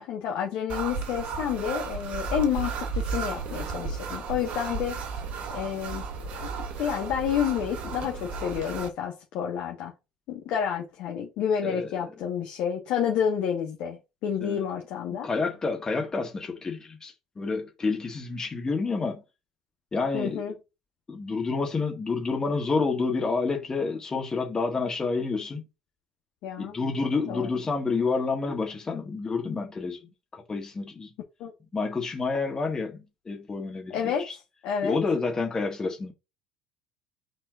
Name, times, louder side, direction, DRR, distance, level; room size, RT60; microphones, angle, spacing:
voice 1, 0.0-5.0 5.5-6.0 6.4-6.5 6.8-9.9 10.3-15.3 20.1-20.5 26.4-26.7 27.3-27.5 31.4-31.5 33.9-34.3 34.6-35.0, left 8 dB, 60° left, 1.5 m, -29 dB
sound 1, 0.7-8.9, right 4 dB, 55° right, 1.2 m, -34 dB
voice 2, 11.6-12.1 14.4-14.7 15.1-19.2 19.9-20.4 21.1-25.6 26.6-31.1 31.7-34.4 34.8-36.1, left 4 dB, 25° left, 1.9 m, -29 dB
9.2 x 4.3 x 2.5 m
hypercardioid pair, 60°, 3 cm